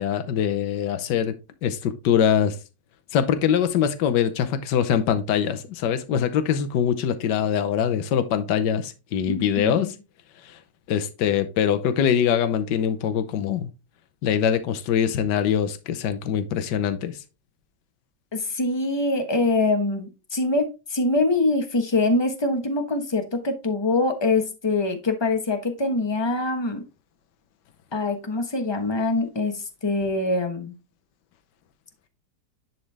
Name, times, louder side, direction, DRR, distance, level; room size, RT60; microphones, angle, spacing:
voice 1, 0.0-1.3 1.6-2.5 3.1-9.9 10.5-10.6 10.9-13.7 14.2-17.2, left 8 dB, 80° left, 1.4 m, -23 dB
voice 2, 9.3-9.9 18.3-26.8 27.9-30.7, left 2 dB, 20° left, 1.0 m, -24 dB
10.5 x 4.3 x 3.3 m
omnidirectional pair, 1.9 m